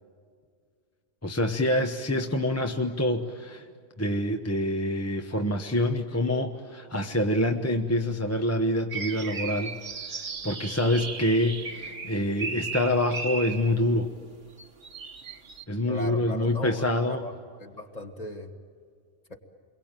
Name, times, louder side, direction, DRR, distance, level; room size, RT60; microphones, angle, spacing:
voice 1, 1.2-3.6 4.0-9.8 10.1-14.1 15.7-17.2, left 1 dB, 15° left, 4 dB, 0.9 m, -26 dB
sound 1, 8.9-13.8 14.6-15.6, right 4 dB, 55° right, 1.4 m, -36 dB
voice 2, 15.9-17.3 17.6-18.5 19.3-19.4, left 1 dB, 30° left, 4 dB, 2.0 m, -38 dB
29.0 x 22.5 x 9.0 m, 2.1 s
omnidirectional pair, 1.3 m